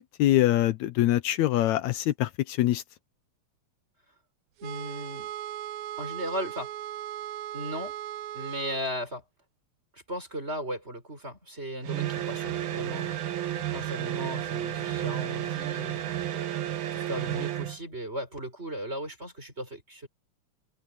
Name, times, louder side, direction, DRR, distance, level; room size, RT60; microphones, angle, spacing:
voice 1, 0.0-2.8, left 14 dB, 80° left, 2.1 m, -24 dB
voice 2, 4.6-5.3 6.0-6.7 7.5-8.0 8.3-9.2 9.9-16.6 16.9-20.1, equal, 20° right, 7.6 m, -37 dB
sound 1, 4.6-8.8, right 12 dB, 80° right, 1.2 m, -37 dB
sound 2, 11.8-17.8, right 12 dB, 60° right, 1.4 m, -32 dB
open air
omnidirectional pair, 3.3 m